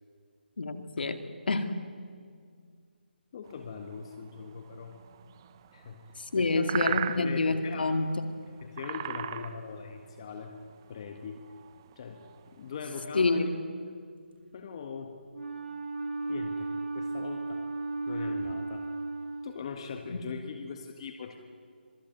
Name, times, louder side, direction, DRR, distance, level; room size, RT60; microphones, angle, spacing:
voice 1, 0.6-1.8 6.2-8.2 13.1-13.5 20.1-20.2, left 3 dB, 60° left, 8 dB, 2.3 m, -28 dB
voice 2, 3.3-5.0 5.7-6.0 6.3-7.9 8.6-10.5 10.9-11.4 12.0-12.2 12.6-13.5 14.5-15.2 16.3-17.6 18.1-18.9 19.4-21.4, left 5 dB, 30° left, 5 dB, 1.6 m, -41 dB
sound 1, 3.4-13.1, right 10 dB, 20° right, 0.7 m, -39 dB
Wind instrument woodwind instrument, 15.3-20.1, right 2 dB, 80° right, 6.1 m, -35 dB
26.0 x 18.5 x 9.2 m, 2.1 s
figure-of-eight pair, 165°, 6 cm